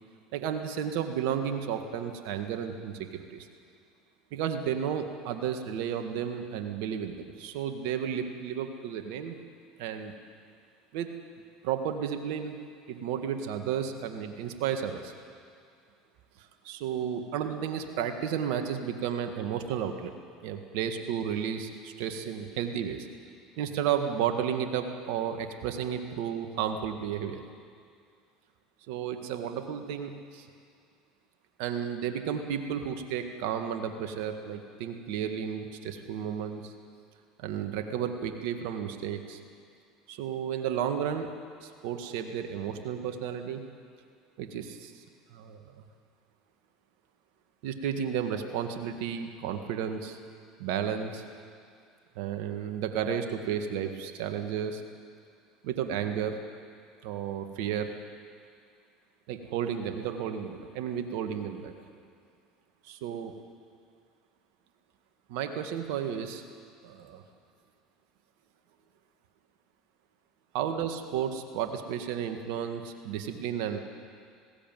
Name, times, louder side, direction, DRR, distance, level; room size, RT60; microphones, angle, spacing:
voice 1, 0.3-3.5 4.3-9.4 9.8-10.1 10.9-11.1 11.6-12.6 12.9-15.1 16.4-20.1 20.4-23.1 23.6-27.4 28.9-30.5 31.6-36.7 37.4-39.4 40.1-41.3 41.6-43.6 44.4-44.9 45.3-45.9 47.6-50.2 50.6-51.2 52.2-54.8 55.6-56.4 57.0-57.9 59.3-61.7 62.8-63.3 65.3-66.4 66.8-67.2 70.5-73.8, right 8 dB, 70° right, 6 dB, 1.8 m, -32 dB
20.0 x 16.5 x 9.3 m, 2.3 s
hypercardioid pair, 85°, 0 cm